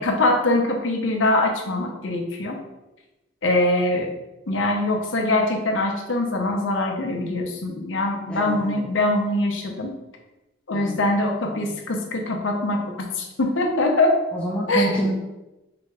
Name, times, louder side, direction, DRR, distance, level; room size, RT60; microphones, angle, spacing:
voice 1, 0.0-2.6 3.4-4.1 4.5-9.9 10.7-14.2 14.7-15.0, left 2 dB, 85° left, 2 dB, 0.8 m, -23 dB
voice 2, 8.3-8.8 10.7-11.0 11.4-11.8 14.3-15.1, right 1 dB, 5° left, -6 dB, 0.7 m, -27 dB
3.9 x 3.4 x 3.3 m, 1.0 s
head